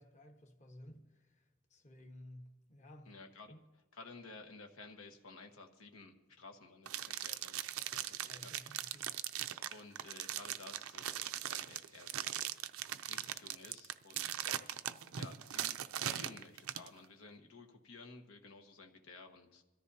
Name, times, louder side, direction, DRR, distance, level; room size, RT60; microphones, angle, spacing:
voice 1, 0.0-3.1 3.5-3.6 8.3-9.1, left 1 dB, 35° left, 3 dB, 1.2 m, -56 dB
voice 2, 3.0-3.5 3.9-9.2 9.7-12.5 13.1-14.5 15.1-19.6, left 3 dB, 80° left, 4 dB, 1.3 m, -55 dB
sound 1, 6.9-16.9, right 11 dB, 80° right, 0.5 m, -40 dB
23.0 x 13.5 x 2.8 m, 1.1 s
head